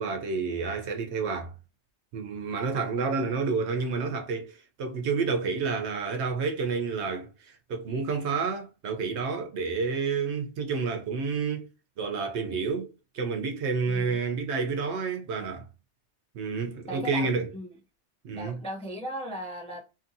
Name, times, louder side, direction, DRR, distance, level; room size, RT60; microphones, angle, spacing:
voice 1, 0.0-1.5 2.1-11.7 12.0-15.6 16.3-17.5 18.2-18.6, right 4 dB, 80° right, 0.9 m, -29 dB
voice 2, 16.9-17.8 18.3-19.8, equal, 10° left, 0.3 m, -37 dB
2.8 x 2.6 x 2.5 m
omnidirectional pair, 1.2 m